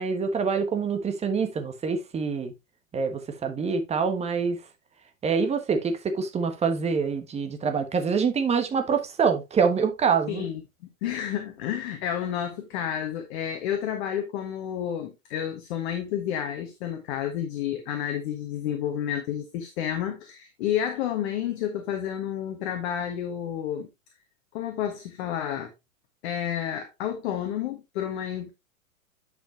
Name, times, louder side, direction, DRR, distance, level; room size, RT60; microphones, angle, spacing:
voice 1, 0.0-2.5 2.9-4.7 5.2-10.5, right 5 dB, 15° right, 1.3 m, -25 dB
voice 2, 10.3-10.6 11.0-23.9 24.5-25.7 26.2-28.5, left 10 dB, 50° left, 1.6 m, -30 dB
10.0 x 5.4 x 2.9 m
hypercardioid pair, 120°, 41 cm